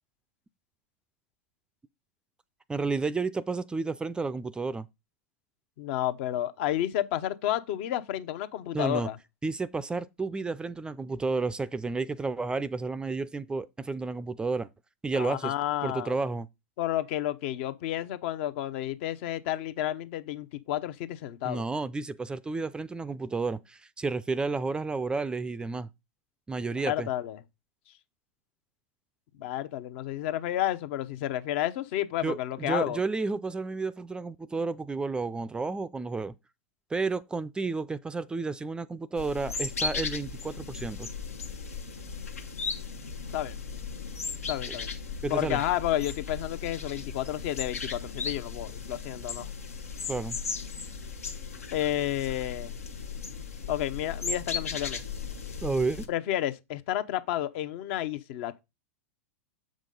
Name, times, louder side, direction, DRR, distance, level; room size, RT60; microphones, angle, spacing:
voice 1, 2.7-4.9 8.7-9.1 9.4-14.7 15.0-15.5 15.8-16.5 21.4-25.9 26.5-27.1 32.2-36.3 36.9-41.1 44.7-44.8 45.2-45.6 50.1-50.4 55.6-56.1, right 3 dB, 10° right, 0.4 m, -31 dB
voice 2, 5.8-9.2 15.1-16.1 16.8-21.6 26.8-27.4 29.4-33.0 43.3-43.6 44.5-44.9 45.3-49.5 51.7-52.7 53.7-55.0 56.1-58.6, left 12 dB, 55° left, 0.7 m, -31 dB
sound 1, 39.2-56.1, left 5 dB, 85° left, 1.0 m, -36 dB
7.4 x 5.2 x 3.7 m
hypercardioid pair, 100°, 8 cm